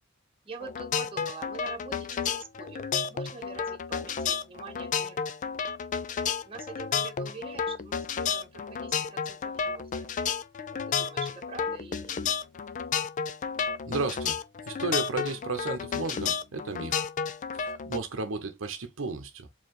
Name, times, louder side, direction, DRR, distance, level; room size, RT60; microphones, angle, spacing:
voice 1, 0.4-5.7 6.4-10.2 10.9-12.3, right 4 dB, 25° right, 0.9 m, -45 dB
sound 1, 0.6-18.0, left 6 dB, 40° left, 0.4 m, -31 dB
voice 2, 13.9-14.4 14.7-17.0 17.5-19.5, right 3 dB, 70° right, 0.8 m, -33 dB
4.6 x 2.9 x 3.0 m
head